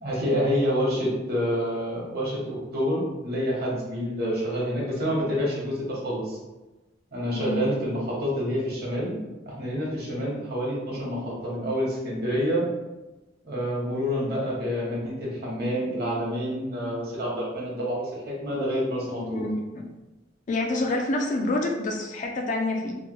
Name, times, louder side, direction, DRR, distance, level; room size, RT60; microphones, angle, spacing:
voice 1, 0.0-6.4 7.1-9.1 9.5-12.6 13.4-19.4, equal, 55° right, -5 dB, 1.1 m, -28 dB
voice 2, 7.3-7.7 19.2-19.8 20.5-23.0, left 2 dB, 40° left, 2 dB, 0.4 m, -27 dB
2.9 x 2.3 x 2.9 m, 1.1 s
head